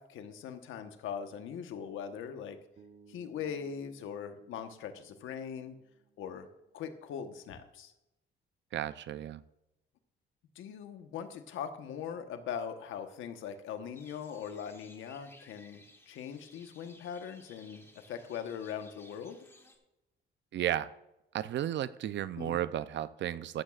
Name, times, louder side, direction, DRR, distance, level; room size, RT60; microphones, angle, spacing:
voice 1, 0.0-2.6 3.1-5.8 6.2-6.5 6.7-7.9 10.5-19.4 22.4-22.6, left 7 dB, 85° left, 7 dB, 1.2 m, -41 dB
Bass guitar, 2.8-6.8, right 6 dB, 40° right, 0.9 m, -61 dB
voice 2, 8.7-9.4 20.5-20.9 21.3-23.6, right 11 dB, 65° right, 15 dB, 0.6 m, -33 dB
sound 1, 13.9-19.8, left 1 dB, 15° left, 2.2 m, -59 dB
14.5 x 12.0 x 2.5 m, 0.92 s
cardioid pair, 90°, 20 cm